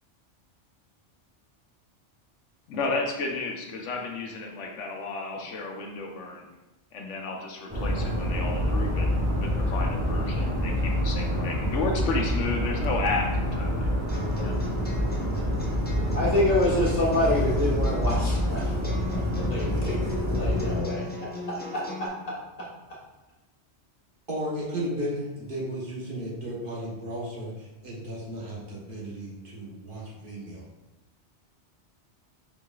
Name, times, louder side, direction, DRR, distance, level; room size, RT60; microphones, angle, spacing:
voice 1, 2.7-6.5 6.9-9.1 9.4-13.9 14.3-14.6, left 3 dB, 85° left, 2 dB, 1.0 m, -32 dB
sound 1, 7.7-20.8, equal, 15° right, 1.6 m, -27 dB
sound 2, 14.1-22.1, left 3 dB, 10° left, 0.5 m, -38 dB
voice 2, 16.1-18.7 19.4-21.0 21.7-21.8, left 1 dB, 35° left, -6 dB, 1.4 m, -26 dB
voice 3, 24.3-30.6, equal, 50° right, -5 dB, 1.2 m, -34 dB
4.8 x 4.7 x 2.3 m, 1.0 s
omnidirectional pair, 1.2 m